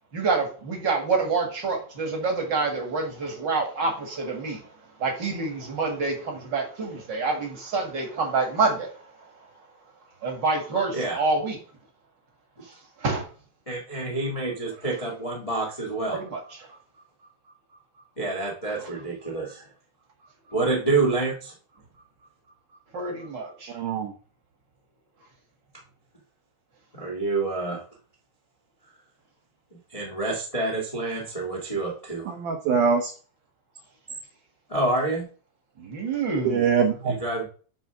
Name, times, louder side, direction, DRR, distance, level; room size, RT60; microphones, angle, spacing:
voice 1, 0.1-4.6 5.0-8.9 10.2-11.6 13.0-13.2 16.1-16.4 18.7-18.9 22.9-23.7 35.8-36.7, right 4 dB, 45° right, 1 dB, 1.4 m, -27 dB
voice 2, 13.6-16.2 18.2-19.7 20.5-21.5 26.9-27.8 29.9-32.3 34.7-35.3 37.0-37.5, right 3 dB, 65° left, -2 dB, 0.3 m, -27 dB
voice 3, 23.7-24.1 32.3-33.1 36.5-37.2, right 6 dB, 75° right, 3 dB, 1.9 m, -23 dB
9.3 x 3.5 x 5.8 m, 0.40 s
omnidirectional pair, 4.5 m